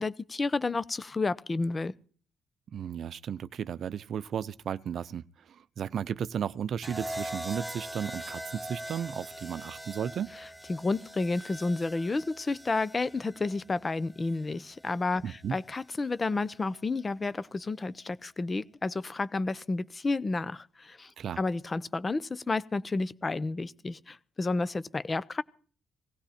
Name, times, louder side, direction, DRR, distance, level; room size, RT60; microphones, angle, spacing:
voice 1, 0.0-1.9 10.7-21.1 21.4-25.4, left 3 dB, 25° left, 0.9 m, -31 dB
voice 2, 2.7-10.3 15.2-15.6 21.2-21.4, right 8 dB, 60° right, 0.7 m, -34 dB
sound 1, 6.8-15.0 16.2-16.6, right 1 dB, ahead, 1.2 m, -42 dB
19.0 x 16.0 x 4.4 m
cardioid pair, 90°, 0 cm